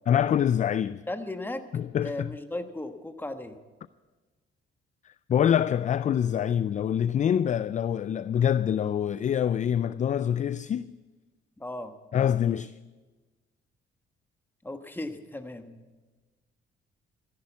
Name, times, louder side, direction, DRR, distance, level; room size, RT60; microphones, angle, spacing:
voice 1, 0.1-1.0 1.7-2.3 5.3-10.9 12.1-12.7, left 9 dB, 40° left, 0.4 m, -25 dB
voice 2, 1.1-1.6 2.0-3.6 11.6-11.9 14.6-15.9, left 2 dB, 10° left, 1.3 m, -36 dB
14.5 x 10.5 x 8.3 m
cardioid pair, 90°, 20 cm